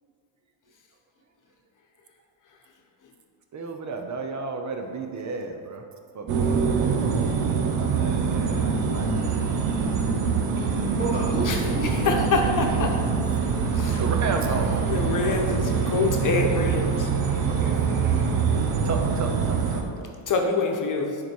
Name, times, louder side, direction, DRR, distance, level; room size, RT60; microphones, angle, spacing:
voice 1, 3.5-5.9 6.1-6.4 7.8-9.4 14.0-14.8 18.8-20.1, right 3 dB, 35° right, 4 dB, 0.8 m, -32 dB
sound 1, 6.3-19.8, right 5 dB, 75° right, 1.1 m, -24 dB
voice 2, 11.0-13.0 15.2-15.7 17.4-18.8, right 1 dB, 20° right, -7 dB, 1.7 m, -34 dB
voice 3, 12.0-13.0 13.7-13.9 14.8-17.1 20.3-21.2, left 4 dB, 40° left, 2 dB, 1.0 m, -25 dB
9.9 x 4.6 x 4.6 m, 2.2 s
cardioid pair, 145°, 48 cm